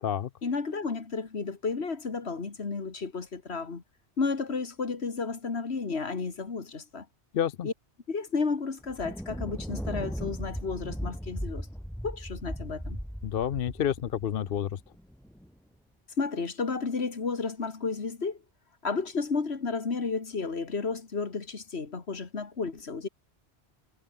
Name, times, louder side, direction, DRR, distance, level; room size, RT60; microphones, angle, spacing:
voice 1, 0.4-3.8 4.2-7.1 7.6-7.7 8.1-11.7 12.0-13.0 16.2-18.4 18.8-23.1, left 4 dB, 80° left, 2.2 m, -32 dB
voice 2, 7.3-7.7 13.2-14.8, left 9 dB, 65° left, 0.8 m, -29 dB
Thunder, 8.8-15.5, equal, ahead, 7.2 m, -37 dB
omnidirectional pair, 1.1 m